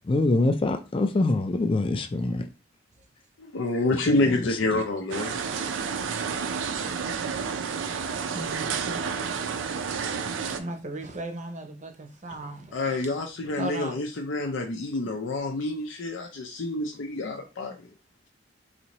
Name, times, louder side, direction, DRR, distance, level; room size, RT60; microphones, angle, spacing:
voice 1, 0.1-2.5 4.1-4.5, left 2 dB, 30° left, 0.4 m, -25 dB
voice 2, 3.5-5.4 12.7-17.7, left 2 dB, 85° left, 0.6 m, -28 dB
sound 1, 5.1-10.6, right 6 dB, 85° right, 0.4 m, -30 dB
voice 3, 8.3-9.0 10.5-12.8 13.5-14.0, right 1 dB, 40° right, 0.6 m, -36 dB
4.1 x 2.6 x 2.9 m
head